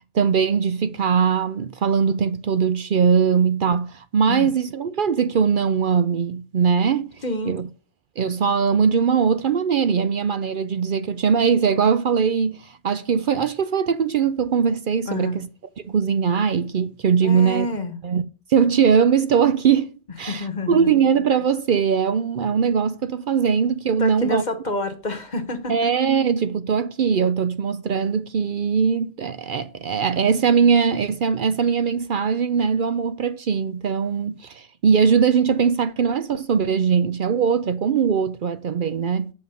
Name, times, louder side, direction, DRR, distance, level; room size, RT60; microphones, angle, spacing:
voice 1, 0.1-7.1 7.5-7.7 8.2-15.5 15.8-17.7 18.0-18.2 18.5-24.4 25.7-39.3, right 6 dB, 60° right, 0.7 m, -21 dB
voice 2, 7.2-7.6 15.1-15.4 17.2-17.9 20.3-20.9 24.0-25.7, left 2 dB, 45° left, 1.4 m, -27 dB
7.4 x 5.7 x 6.8 m
omnidirectional pair, 1.1 m